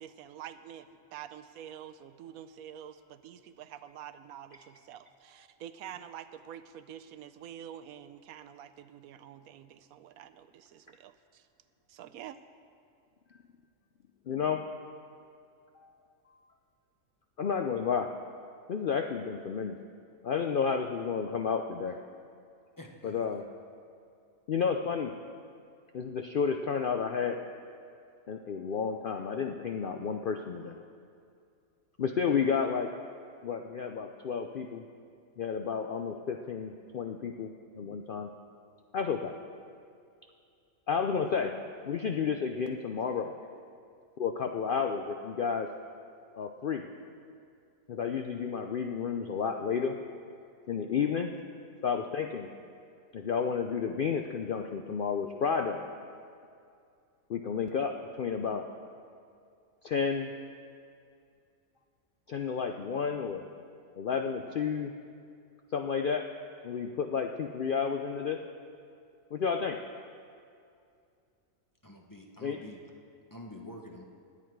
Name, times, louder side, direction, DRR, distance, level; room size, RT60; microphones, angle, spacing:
voice 1, 0.0-11.5 11.9-12.4, right 10 dB, 85° right, 12 dB, 1.1 m, -47 dB
voice 2, 14.3-14.7 15.8-15.9 17.4-18.1 18.7-19.8 20.2-22.0 23.0-23.4 24.5-25.1 25.9-27.4 28.3-30.8 32.0-32.9 33.4-34.8 35.4-38.3 38.9-39.4 40.9-41.6 41.8-43.3 44.2-45.7 46.4-46.9 47.9-50.0 50.7-51.3 51.8-52.5 53.1-55.8 57.3-58.7 59.8-60.3 62.3-63.5 64.0-64.9 65.7-66.3 66.6-68.4 69.3-69.8 72.4-72.6, left 6 dB, 60° left, 5 dB, 0.5 m, -31 dB
voice 3, 22.8-23.4 29.2-29.3 71.8-72.8 73.3-74.0, left 1 dB, 15° left, 1 dB, 0.8 m, -47 dB
20.0 x 8.3 x 4.6 m, 2.4 s
omnidirectional pair, 1.5 m